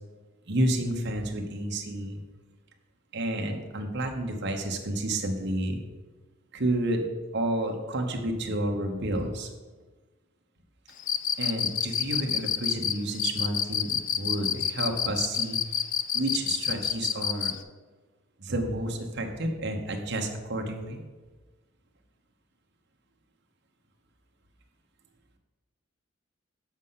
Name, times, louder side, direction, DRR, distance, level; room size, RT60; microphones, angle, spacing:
voice 1, 0.5-2.2 3.1-5.8 6.5-7.1 7.3-9.5 11.4-15.6 16.1-17.5 18.4-21.0, right 1 dB, 55° right, 3 dB, 1.1 m, -30 dB
Cricket, 11.0-17.6, left 9 dB, 40° left, 0.4 m, -27 dB
7.2 x 5.4 x 5.7 m, 1.3 s
head